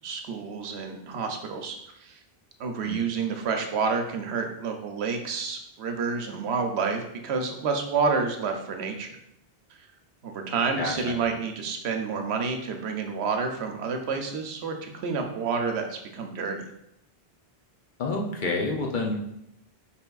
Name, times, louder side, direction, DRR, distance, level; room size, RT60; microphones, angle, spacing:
voice 1, 0.0-2.2 2.6-9.1 9.8-9.9 10.2-16.7, right 5 dB, 80° right, 4 dB, 0.8 m, -29 dB
voice 2, 10.8-11.1 18.0-19.2, left 3 dB, 55° left, 0 dB, 0.6 m, -28 dB
5.0 x 2.9 x 2.3 m, 0.78 s
omnidirectional pair, 1.1 m